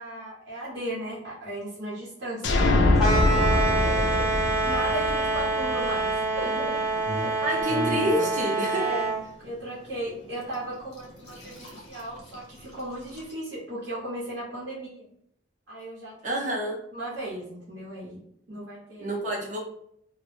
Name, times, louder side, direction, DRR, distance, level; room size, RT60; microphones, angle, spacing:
voice 1, 0.0-4.3 4.6-6.8 8.7-9.1 9.4-15.1 15.7-16.6 16.9-18.2 18.5-19.4, right 1 dB, 70° right, -9 dB, 0.8 m, -36 dB
sound 1, 2.4-6.1, left 2 dB, 70° left, 0.4 m, -23 dB
sound 2, 3.0-9.2, right 2 dB, 5° right, 0.7 m, -26 dB
sound 3, 5.4-13.3, left 1 dB, 35° left, 0.8 m, -41 dB
voice 2, 7.4-8.9 16.2-16.8 19.0-19.6, equal, 40° right, -1 dB, 0.6 m, -28 dB
2.0 x 2.0 x 3.0 m, 0.70 s
head